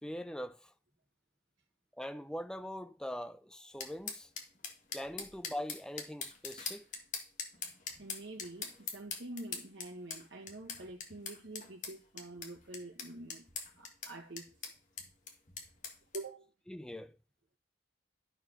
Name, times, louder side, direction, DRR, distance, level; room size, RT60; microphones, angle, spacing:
voice 1, 0.0-0.7 2.0-4.3 4.9-6.9 16.7-17.2, equal, 5° left, 0.5 m, -42 dB
sound 1, 3.8-16.2, left 6 dB, 40° left, 1.7 m, -43 dB
voice 2, 8.0-13.5 13.8-14.6 16.1-16.5, right 2 dB, 70° right, 1.2 m, -46 dB
12.0 x 4.8 x 5.7 m
head